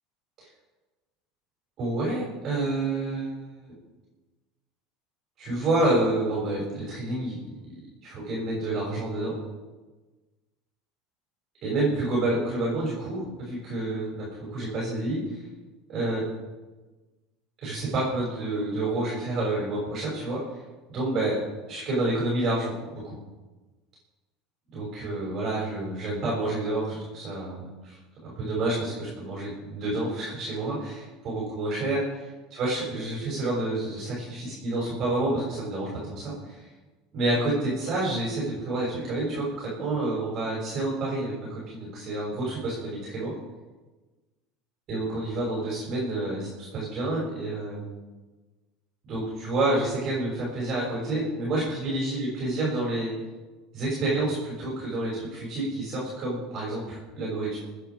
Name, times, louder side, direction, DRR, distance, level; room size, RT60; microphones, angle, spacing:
voice 1, 1.8-3.7 5.4-9.4 11.6-15.2 15.9-16.2 17.6-20.4 20.9-21.4 21.7-23.2 24.7-28.0 28.2-32.2 32.5-36.6 37.1-43.3 44.9-47.9 49.0-53.1 53.7-57.6, right 2 dB, 40° right, -6 dB, 6.4 m, -29 dB
27.0 x 9.8 x 4.8 m, 1.2 s
supercardioid pair, 130°, 0 cm